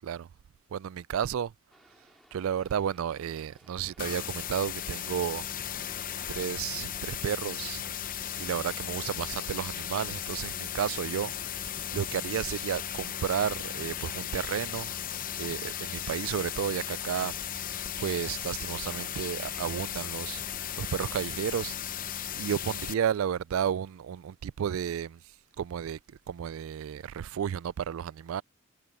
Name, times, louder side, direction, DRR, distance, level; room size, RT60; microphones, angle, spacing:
voice 1, 0.7-1.5 2.3-5.5 6.3-7.9 8.4-11.3 11.6-15.0 15.4-28.4, right 8 dB, 65° right, 0.3 m, -33 dB
sound 1, 1.7-21.0, equal, ahead, 2.1 m, -61 dB
sound 2, 4.0-22.9, left 10 dB, 40° left, 0.7 m, -36 dB
head